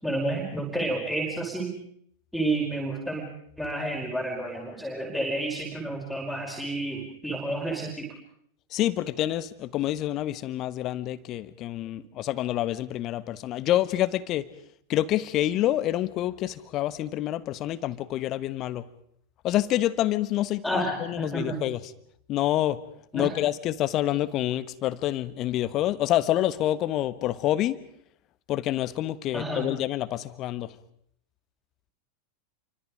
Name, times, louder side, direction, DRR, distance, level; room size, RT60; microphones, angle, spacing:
voice 1, 0.0-1.7 2.3-3.2 3.6-8.1 20.6-21.6 23.1-23.3 29.3-29.6, right 2 dB, ahead, -1 dB, 5.2 m, -30 dB
voice 2, 8.7-14.5 14.9-18.8 19.4-21.8 22.3-22.8 23.1-27.8 28.5-30.7, left 13 dB, 35° left, 15 dB, 1.3 m, -27 dB
29.0 x 24.5 x 5.0 m, 0.69 s
figure-of-eight pair, 90°, 0 cm